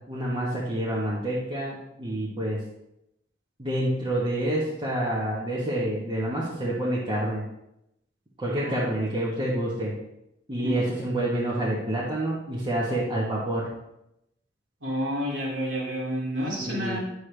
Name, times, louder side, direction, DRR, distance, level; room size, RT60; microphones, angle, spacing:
voice 1, 0.1-2.6 3.6-7.4 8.4-9.9 10.5-13.7 16.6-17.0, right 1 dB, 25° right, -7 dB, 1.3 m, -28 dB
voice 2, 14.8-17.0, equal, 85° right, -4 dB, 2.9 m, -29 dB
9.5 x 6.5 x 3.4 m, 0.85 s
head